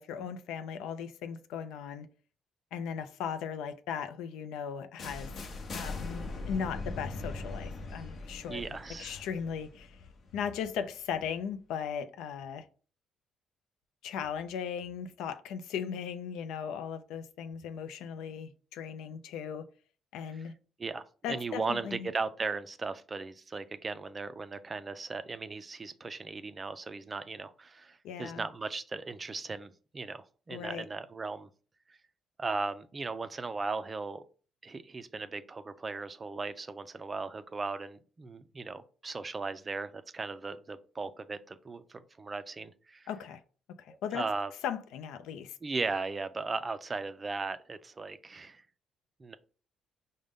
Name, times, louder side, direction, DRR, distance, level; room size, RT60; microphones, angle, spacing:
voice 1, 0.0-2.1 2.7-5.3 5.7-8.6 9.0-10.0 10.3-12.7 14.0-19.7 20.1-20.5 21.2-22.1 28.0-28.5 30.5-30.8 43.1-43.4 43.8-44.3 44.6-45.6, left 7 dB, 85° left, 0.4 m, -37 dB
sound 1, 5.0-10.8, left 3 dB, 50° left, 0.7 m, -40 dB
voice 2, 8.5-9.2 20.3-20.4 20.8-31.5 31.9-32.0 32.4-34.2 34.6-43.1 43.9-44.5 45.6-48.6 49.2-49.3, right 3 dB, 25° right, 0.3 m, -37 dB
5.0 x 2.1 x 3.5 m
cardioid pair, 105°, 0 cm